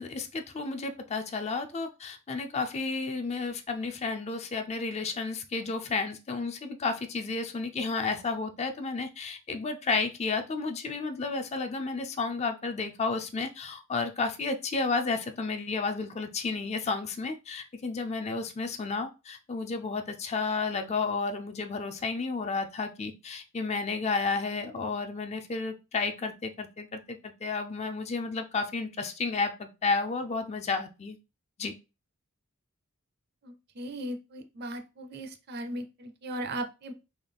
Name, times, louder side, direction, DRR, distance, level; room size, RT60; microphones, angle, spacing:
voice 1, 0.0-31.2 31.6-31.7, left 4 dB, 30° left, 7 dB, 0.4 m, -32 dB
voice 2, 33.4-36.9, right 1 dB, 50° right, 7 dB, 0.5 m, -37 dB
3.8 x 2.3 x 3.4 m, 0.28 s
head